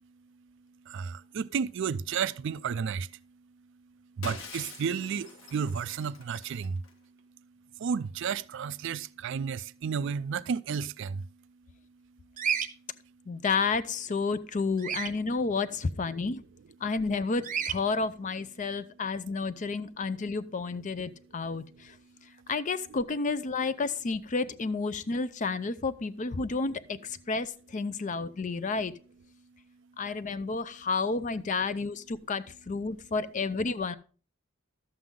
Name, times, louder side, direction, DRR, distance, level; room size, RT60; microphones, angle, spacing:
voice 1, 0.9-3.1 4.2-6.8 7.8-11.3, right 6 dB, 65° right, 0.4 m, -32 dB
Shatter, 4.2-6.9, left 4 dB, 90° left, 1.4 m, -45 dB
Bird vocalization bird call bird song, 12.4-12.7 14.8-15.1 17.4-17.8, right 7 dB, 40° right, 0.7 m, -30 dB
voice 2, 13.3-16.4 16.8-21.9 22.5-28.9 30.0-34.0, left 4 dB, 40° left, 0.5 m, -31 dB
12.0 x 7.7 x 3.7 m
head